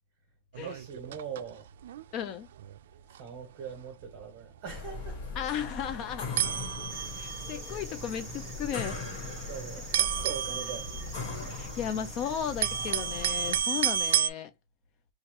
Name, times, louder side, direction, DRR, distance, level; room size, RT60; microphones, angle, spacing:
sound 1, 0.5-1.5 1.8-2.0 2.6-2.8 3.1-3.2 3.7-3.8 4.0-4.2 5.0-5.1 5.8-5.9 6.4-7.7 8.5-9.0 9.2-9.4 9.9-11.9 12.3-14.3, right 10 dB, 90° right, 0.3 m, -31 dB
voice 1, 0.6-1.7 3.1-5.2 7.2-7.4 9.4-11.0, right 7 dB, 40° right, 0.9 m, -41 dB
voice 2, 2.1-2.5 5.4-6.4 7.2-9.0 11.5-14.5, left 9 dB, 30° left, 0.3 m, -35 dB
sound 2, 4.7-13.6, left 3 dB, 55° left, 1.3 m, -40 dB
sound 3, 6.9-14.2, right 2 dB, ahead, 1.4 m, -45 dB
3.0 x 2.4 x 4.3 m
supercardioid pair, 180°, 0 cm